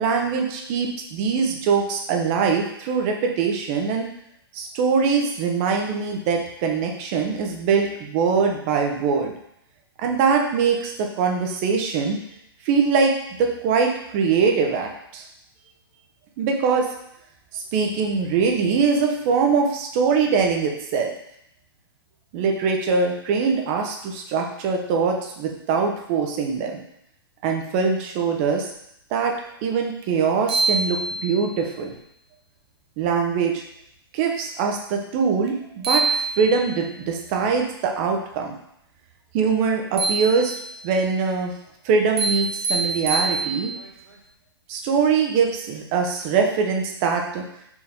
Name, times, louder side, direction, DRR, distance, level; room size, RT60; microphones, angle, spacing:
voice 1, 0.0-4.1 4.5-9.3 10.0-12.2 12.6-13.1 13.4-15.2 16.4-16.9 17.5-21.1 22.3-26.8 27.4-28.7 29.1-29.4 29.6-31.9 33.0-33.6 34.1-38.6 39.3-40.5 40.8-41.5 41.8-43.7 44.7-47.4, right 5 dB, 35° right, 2 dB, 0.7 m, -22 dB
sound 1, 30.0-30.1 30.5-31.6 35.5-35.6 35.8-36.9 40.0-40.9 42.2-43.9, right 3 dB, 75° right, 0.8 m, -25 dB
4.4 x 2.8 x 3.6 m, 0.76 s
hypercardioid pair, 145°, 13 cm